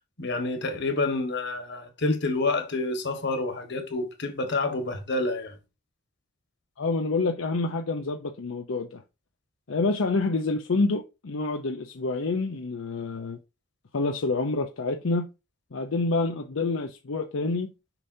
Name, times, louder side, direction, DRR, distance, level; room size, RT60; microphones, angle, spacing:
voice 1, 0.2-5.5, left 2 dB, 60° left, 1.5 m, -28 dB
voice 2, 6.8-9.0 9.7-13.4 13.9-15.3 15.7-17.7, left 3 dB, 80° left, 0.7 m, -27 dB
6.8 x 5.6 x 2.7 m
head